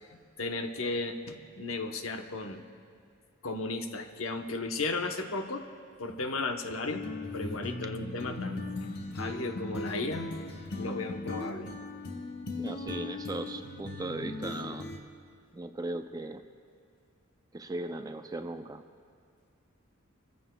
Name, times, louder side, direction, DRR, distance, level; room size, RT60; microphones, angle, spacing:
voice 1, 0.4-2.6 3.4-5.7 6.0-7.1 7.3-8.6 9.1-10.3 10.8-11.7, left 3 dB, 90° left, 5 dB, 1.0 m, -35 dB
sound 1, 6.9-15.0, left 2 dB, 55° left, 1.1 m, -38 dB
voice 2, 12.6-14.9 15.5-16.4 17.5-18.8, right 2 dB, 20° right, 7 dB, 0.4 m, -37 dB
24.5 x 15.0 x 2.3 m, 2.1 s
head